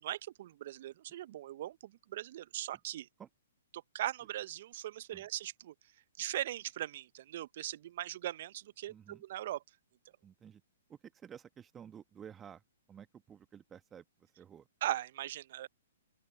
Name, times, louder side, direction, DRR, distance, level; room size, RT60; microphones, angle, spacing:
voice 1, 0.0-3.1 3.7-5.7 6.2-9.6 14.8-15.7, right 13 dB, 50° right, 0.8 m, -39 dB
voice 2, 8.9-9.2 10.2-10.6 10.9-12.6 12.9-14.7, right 8 dB, 15° right, 1.3 m, -52 dB
open air
figure-of-eight pair, 120°, 0 cm